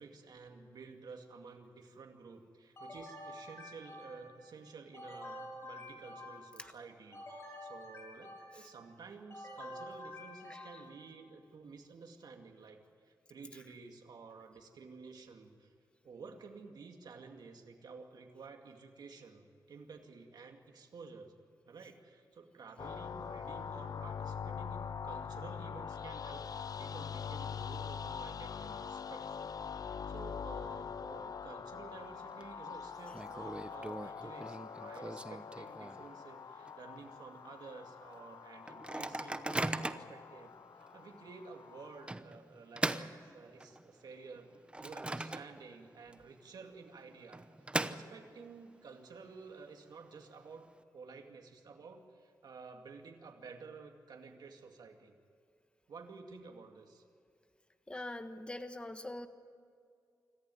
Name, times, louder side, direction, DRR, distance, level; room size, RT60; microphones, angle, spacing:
voice 1, 0.0-15.7 16.0-21.3 21.7-44.5 44.8-47.4 47.8-50.7 50.9-55.1 55.9-57.0, right 4 dB, 75° right, 3 dB, 2.3 m, -52 dB
sound 1, 2.8-4.4 4.9-6.6 7.1-8.8 9.3-11.0, left 1 dB, 40° left, 6.6 m, -48 dB
sound 2, 22.8-42.1, left 7 dB, 60° left, 0.6 m, -44 dB
Microwave oven, 31.9-32.4 32.7-32.8 33.1-36.2 36.6-36.7 37.0-37.3 37.8-37.9 38.7-40.2 40.8-40.9 42.1-43.9 44.3-45.8 46.1-46.2 47.1-48.5, right 2 dB, 15° right, 0.8 m, -39 dB
voice 2, 57.9-59.3, left 1 dB, 15° left, 8 dB, 1.3 m, -43 dB
26.0 x 14.5 x 9.4 m, 2.3 s
wide cardioid pair, 105°, 7 cm